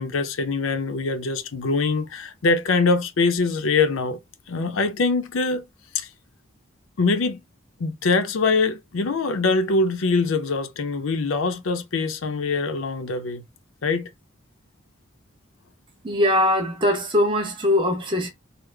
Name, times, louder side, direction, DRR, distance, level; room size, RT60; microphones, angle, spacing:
voice 1, 0.0-4.2 4.5-5.6 5.9-6.1 7.0-7.4 7.8-13.4 13.8-14.1, left 3 dB, 75° left, 0.5 m, -23 dB
voice 2, 16.0-18.3, left 1 dB, 25° right, 0.8 m, -21 dB
3.6 x 2.0 x 3.2 m
head